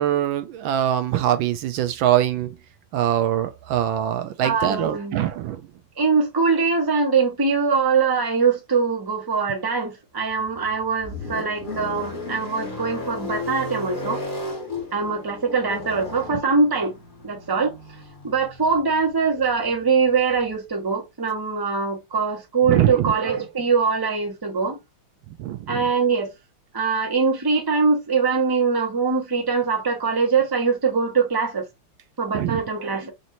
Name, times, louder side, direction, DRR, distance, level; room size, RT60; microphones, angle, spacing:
voice 1, 0.0-2.6 2.9-5.6 16.3-16.4 22.7-23.1 25.4-25.8 32.3-32.6, right 11 dB, 75° right, 1.3 m, -23 dB
voice 2, 4.4-5.2 6.0-14.2 14.9-16.9 17.2-17.8 18.2-24.8 25.7-26.3 26.7-31.7 32.2-33.1, right 5 dB, 15° right, 1.0 m, -22 dB
sound 1, 10.3-20.5, left 2 dB, 25° left, 1.6 m, -35 dB
5.2 x 2.7 x 2.8 m
omnidirectional pair, 2.3 m